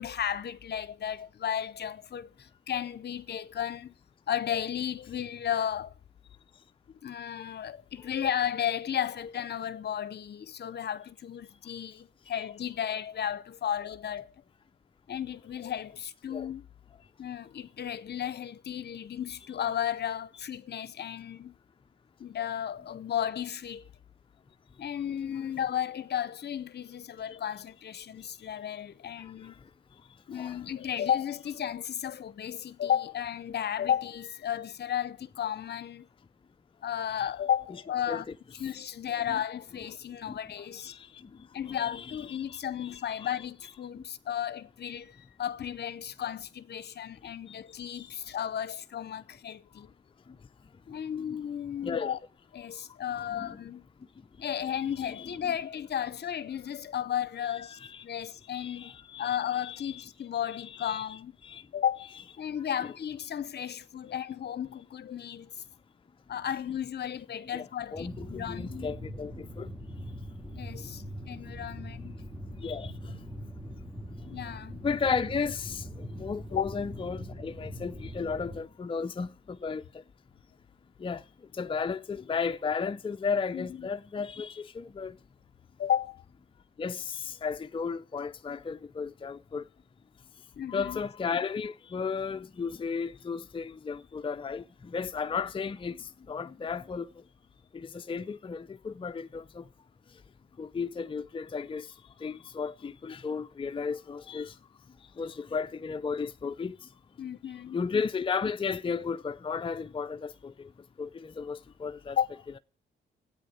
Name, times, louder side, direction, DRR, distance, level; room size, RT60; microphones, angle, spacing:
voice 1, 0.0-3.9 4.3-5.9 7.0-14.3 15.1-16.7 17.2-21.6 22.2-23.8 24.8-29.6 30.3-36.1 36.8-38.2 38.6-40.9 41.5-49.9 50.9-52.2 52.5-53.8 54.4-58.9 59.2-61.3 61.7-62.1 62.4-65.6 66.3-68.7 70.5-72.2 74.3-74.8 76.5-76.6 83.5-83.9 85.8-86.2 90.6-91.0 107.2-107.8 112.2-112.3, left 9 dB, 55° left, 0.8 m, -34 dB
voice 2, 40.8-41.3 41.7-43.3 43.9-44.0 47.5-47.6 51.3-51.4 51.8-52.2 53.1-53.6 55.0-55.4 57.5-58.3 58.5-60.0 60.6-61.1 61.4-61.6 67.5-69.7 72.6-72.9 74.8-79.8 81.0-81.2 81.6-85.1 86.8-89.6 90.7-97.1 97.7-99.7 100.6-101.9 102.2-104.5 105.2-106.8 107.7-110.7 111.0-112.2, left 5 dB, 25° left, 0.5 m, -34 dB
sound 1, 67.9-78.6, equal, 5° right, 2.0 m, -42 dB
10.0 x 8.7 x 9.2 m
supercardioid pair, 55°, 20 cm